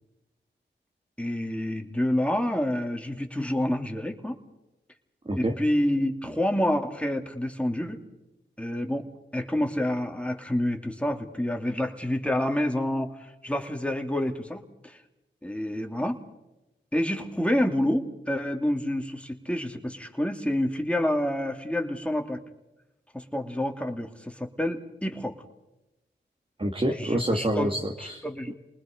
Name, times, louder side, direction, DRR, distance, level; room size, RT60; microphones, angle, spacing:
voice 1, 1.2-4.4 5.4-8.0 8.6-9.1 9.3-15.0 15.4-16.2 16.9-22.4 23.1-25.3 27.0-27.7 28.2-28.5, left 1 dB, 5° left, 4 dB, 2.7 m, -28 dB
voice 2, 26.6-28.2, right 1 dB, 30° right, 1 dB, 2.1 m, -27 dB
28.0 x 20.0 x 5.2 m, 0.97 s
cardioid pair, 45°, 20 cm